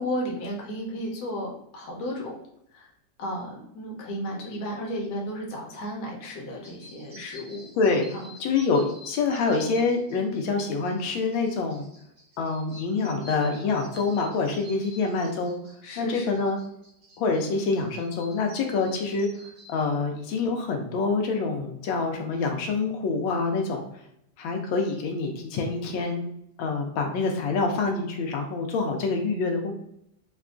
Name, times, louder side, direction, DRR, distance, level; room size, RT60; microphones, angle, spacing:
voice 1, 0.0-2.4 2.7-2.9 3.2-7.7 8.1-8.3 15.8-16.4, equal, 60° left, -1 dB, 1.2 m, -33 dB
Genevieve Rudd Birdsong, 6.6-19.8, right 1 dB, 50° right, 0.3 m, -50 dB
voice 2, 7.7-11.8 12.4-15.6 16.0-16.6 17.2-19.3 19.7-23.8 24.4-26.2 26.6-29.7, left 4 dB, 85° left, 3 dB, 1.4 m, -26 dB
4.3 x 2.3 x 2.4 m, 0.77 s
omnidirectional pair, 2.1 m